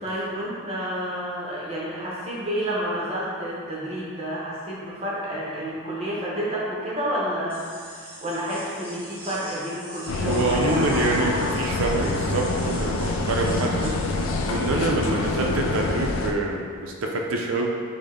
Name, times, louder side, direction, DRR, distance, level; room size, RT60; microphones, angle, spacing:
voice 1, 0.0-11.1 15.0-15.2, equal, 30° right, -7 dB, 0.9 m, -30 dB
sound 1, 7.5-14.9, equal, 5° left, 0.8 m, -42 dB
sound 2, 10.1-16.3, left 2 dB, 75° left, 0.4 m, -26 dB
voice 2, 10.2-13.9 14.5-17.7, right 2 dB, 75° right, 0 dB, 0.5 m, -26 dB
5.0 x 2.1 x 3.7 m, 2.2 s
head